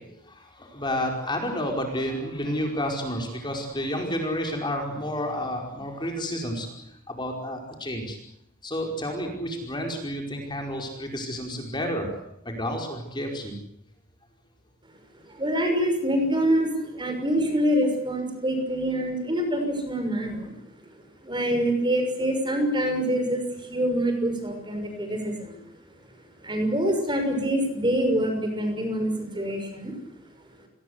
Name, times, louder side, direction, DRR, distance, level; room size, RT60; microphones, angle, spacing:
voice 1, 0.1-8.2 8.6-13.6, equal, 20° left, 2 dB, 5.0 m, -30 dB
voice 2, 15.3-20.5 21.2-25.6 26.4-30.0, equal, 20° right, 5 dB, 6.2 m, -25 dB
29.5 x 21.0 x 8.3 m, 0.78 s
head